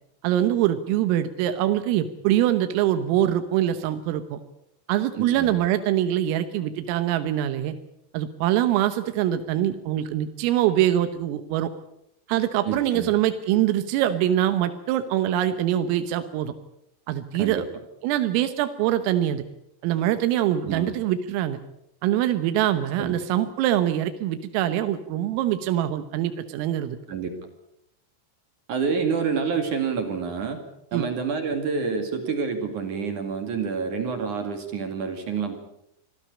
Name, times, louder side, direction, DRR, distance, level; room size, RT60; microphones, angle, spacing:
voice 1, 0.2-4.4 4.9-7.7 8.1-11.7 12.3-16.5 17.1-17.7 18.0-19.4 19.8-21.6 22.0-27.0 30.9-31.1, right 12 dB, 90° right, 9 dB, 3.8 m, -24 dB
voice 2, 5.1-5.7 12.7-13.1 17.3-17.6 20.6-20.9 23.0-23.2 27.1-27.3 28.7-30.6 30.9-35.6, right 5 dB, 45° right, 6 dB, 3.0 m, -28 dB
26.0 x 16.5 x 8.5 m, 0.79 s
omnidirectional pair, 5.8 m